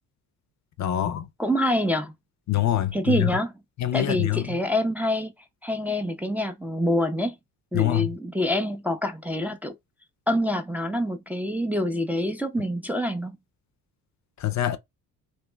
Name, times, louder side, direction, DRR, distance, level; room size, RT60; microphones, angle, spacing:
voice 1, 0.8-1.3 2.5-3.3 3.8-4.6 7.7-8.1 14.4-14.8, left 13 dB, 50° left, 0.5 m, -25 dB
voice 2, 1.4-2.1 2.9-3.5 3.9-5.3 5.6-7.4 7.7-9.7 10.3-13.4, left 1 dB, 5° right, 0.4 m, -26 dB
2.9 x 2.1 x 3.2 m
cardioid pair, 95°, 37 cm